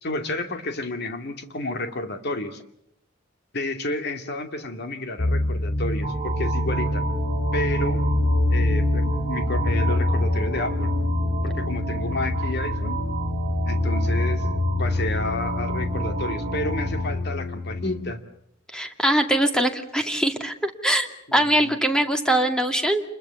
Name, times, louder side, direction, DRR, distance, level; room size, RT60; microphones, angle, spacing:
voice 1, 0.0-2.6 3.5-7.0 7.5-8.1 8.5-10.9 11.4-13.0 13.7-14.5 14.8-18.2 21.3-21.8, left 2 dB, 55° left, 6 dB, 2.4 m, -31 dB
sound 1, 5.2-18.1, left 2 dB, 40° left, 2.9 m, -26 dB
sound 2, 6.0-17.0, right 2 dB, 30° right, 4.6 m, -31 dB
voice 2, 18.7-23.0, right 1 dB, 5° left, 5 dB, 2.3 m, -22 dB
29.0 x 22.0 x 7.0 m, 0.75 s
head